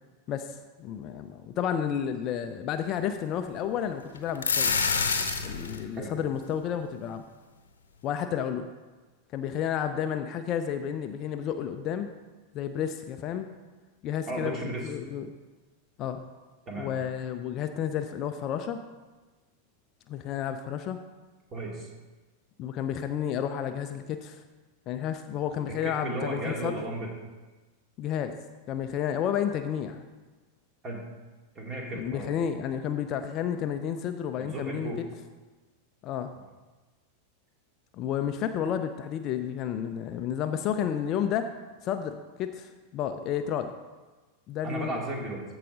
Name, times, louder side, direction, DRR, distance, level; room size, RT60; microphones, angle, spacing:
voice 1, 0.3-4.7 5.4-7.2 8.0-8.7 9.3-12.1 12.5-13.5 14.0-15.3 16.0-16.2 16.8-18.8 20.1-21.0 22.6-24.4 24.9-26.8 28.0-28.3 28.7-30.0 32.0-34.9 36.0-36.3 37.9-41.5 41.8-43.7 44.5-44.9, left 9 dB, 35° left, 8 dB, 0.5 m, -31 dB
sound 1, 4.2-5.8, left 5 dB, 70° left, 0.8 m, -26 dB
voice 2, 14.3-14.9 16.7-16.9 21.5-21.9 25.7-27.1 30.8-31.0 31.6-32.3 34.4-35.0 44.6-45.4, right 1 dB, 25° right, -1 dB, 2.3 m, -34 dB
14.5 x 4.9 x 3.8 m, 1.3 s
figure-of-eight pair, 90°, 0 cm